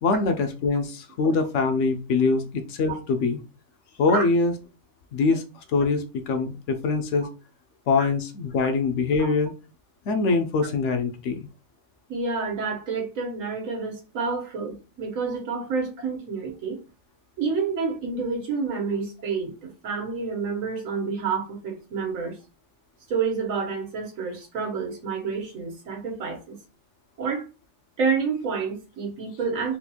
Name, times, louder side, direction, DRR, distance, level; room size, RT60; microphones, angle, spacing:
voice 1, 0.0-3.4 4.0-4.5 5.1-7.3 7.9-9.5 10.1-11.5, left 4 dB, 70° left, 0.8 m, -23 dB
voice 2, 12.1-16.8 17.4-22.4 23.1-26.6 27.2-27.4 28.0-29.8, right 5 dB, 75° right, 1.4 m, -29 dB
4.2 x 2.8 x 2.3 m
omnidirectional pair, 1.4 m